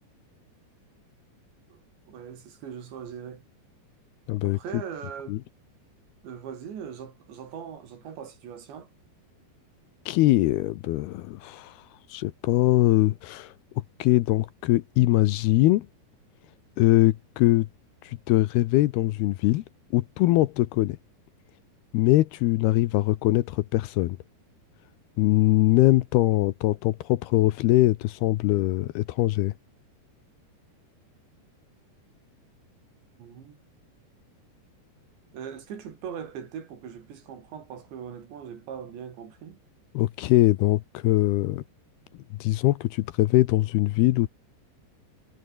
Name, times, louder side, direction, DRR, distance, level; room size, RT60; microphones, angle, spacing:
voice 1, 2.1-3.4 4.4-5.4 6.2-8.9 33.2-33.6 35.3-39.6, right 8 dB, 85° right, 6.0 m, -40 dB
voice 2, 4.3-4.6 5.3-5.4 10.1-11.7 12.1-15.9 16.8-17.7 18.0-19.6 19.9-21.0 21.9-24.2 25.2-29.5 39.9-41.6 42.4-44.3, left 17 dB, 75° left, 2.6 m, -22 dB
omnidirectional pair, 4.9 m